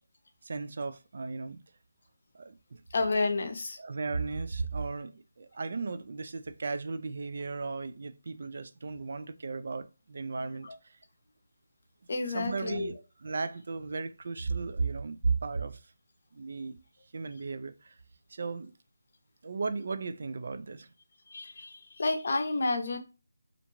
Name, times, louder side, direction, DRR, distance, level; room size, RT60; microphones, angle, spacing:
voice 1, 0.4-1.6 2.3-2.8 3.8-11.0 12.3-15.8 16.3-16.8 17.1-18.0 18.3-18.7 19.4-20.9, right 4 dB, 50° right, 0.3 m, -35 dB
voice 2, 2.9-3.8 10.6-10.7 12.1-12.9 21.3-23.0, left 3 dB, 55° left, 0.6 m, -30 dB
2.5 x 2.2 x 3.0 m
figure-of-eight pair, 165°, 0 cm